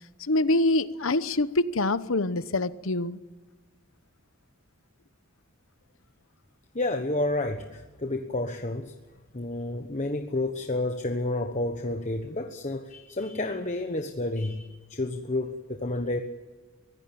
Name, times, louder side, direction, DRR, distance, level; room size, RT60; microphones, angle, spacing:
voice 1, 0.2-3.2, left 2 dB, 70° left, 1.0 m, -25 dB
voice 2, 6.7-8.9 9.3-16.2, left 2 dB, 35° left, 1.2 m, -30 dB
24.0 x 16.5 x 8.8 m
head